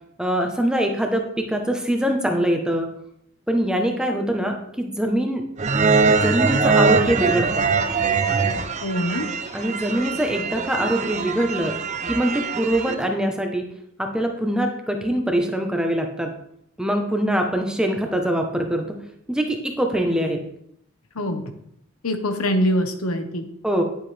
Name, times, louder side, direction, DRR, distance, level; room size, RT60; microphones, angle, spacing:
voice 1, 0.2-2.9 3.5-5.4 6.1-7.7 9.5-11.8 12.1-13.6 14.0-16.3 16.8-19.0 19.3-20.4 23.6-23.8, right 1 dB, 5° right, 3 dB, 1.0 m, -23 dB
sound 1, 5.6-12.9, right 4 dB, 35° right, 0.6 m, -22 dB
voice 2, 8.8-9.3 21.1-21.5 22.0-23.4, equal, 90° left, 7 dB, 1.2 m, -23 dB
11.0 x 7.8 x 3.4 m, 0.72 s
head